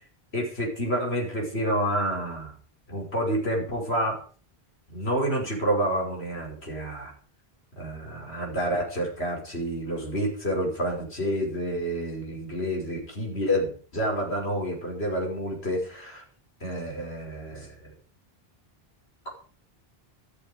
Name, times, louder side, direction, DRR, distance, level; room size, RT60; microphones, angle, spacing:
voice 1, 0.3-2.5 2.9-4.2 4.9-7.1 7.8-16.2 16.6-17.9, equal, 90° left, 0 dB, 5.7 m, -29 dB
13.5 x 13.5 x 5.1 m, 0.42 s
omnidirectional pair, 1.0 m